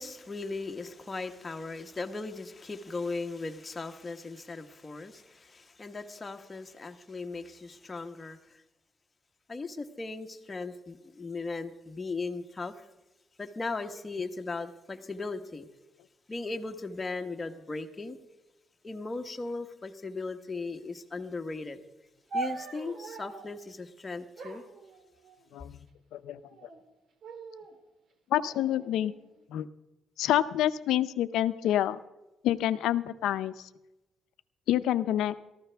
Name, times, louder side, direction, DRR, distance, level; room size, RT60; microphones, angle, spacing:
voice 1, 0.0-8.6 9.5-12.9 13.4-15.7 16.3-18.2 18.8-21.8 22.3-24.6, left 3 dB, 25° left, 5 dB, 1.2 m, -38 dB
sound 1, 22.3-23.6 24.4-25.6 26.4-26.8 27.2-27.8 28.5-29.5, right 3 dB, 60° right, 1.7 m, -41 dB
voice 2, 26.1-26.7 28.3-29.1 29.5-29.7 30.2-32.0 32.4-33.7 34.7-35.4, left 12 dB, 85° left, 13 dB, 0.5 m, -28 dB
18.5 x 14.0 x 3.4 m, 0.99 s
cardioid pair, 90°, 0 cm